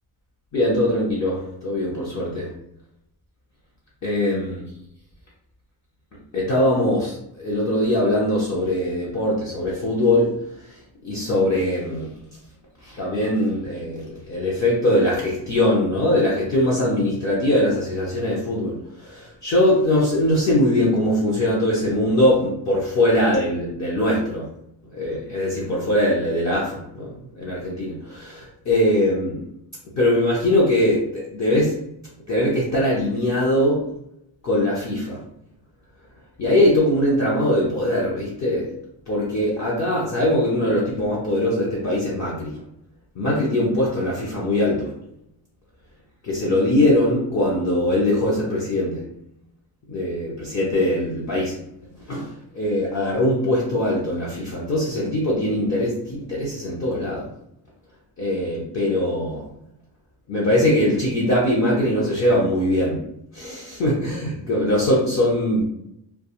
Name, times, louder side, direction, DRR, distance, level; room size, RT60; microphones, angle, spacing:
voice 1, 0.5-2.5 4.0-4.6 6.3-10.3 11.0-12.1 12.8-24.5 24.9-27.1 27.4-29.4 30.0-31.8 32.3-33.9 34.4-35.2 36.4-38.7 39.1-42.5 43.2-44.9 46.2-49.0 49.9-51.5 52.1-52.3 52.5-57.3 58.2-59.4 60.3-63.0 63.3-65.6, left 1 dB, 35° left, -5 dB, 0.5 m, -21 dB
2.3 x 2.3 x 2.9 m, 0.79 s
wide cardioid pair, 160°, 48 cm